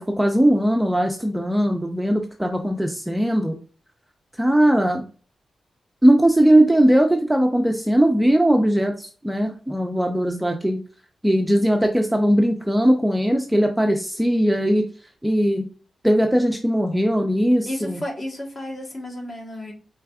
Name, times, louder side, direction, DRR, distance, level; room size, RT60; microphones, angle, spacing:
voice 1, 0.0-3.6 4.4-5.0 6.0-10.8 11.2-14.8 15.2-15.6 16.0-18.0, right 1 dB, 5° right, 3 dB, 0.4 m, -19 dB
voice 2, 17.6-19.7, left 1 dB, 35° left, -1 dB, 1.3 m, -32 dB
4.6 x 3.3 x 2.3 m, 0.39 s
wide cardioid pair, 145°, 0 cm